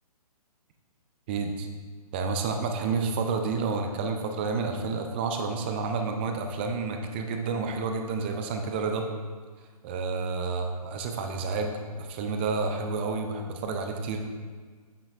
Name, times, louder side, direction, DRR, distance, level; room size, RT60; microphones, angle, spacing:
voice 1, 1.3-1.7 2.1-9.1 9.8-14.2, right 4 dB, 15° right, 4 dB, 0.4 m, -30 dB
7.8 x 7.2 x 2.4 m, 1.5 s
figure-of-eight pair, 130°, 20 cm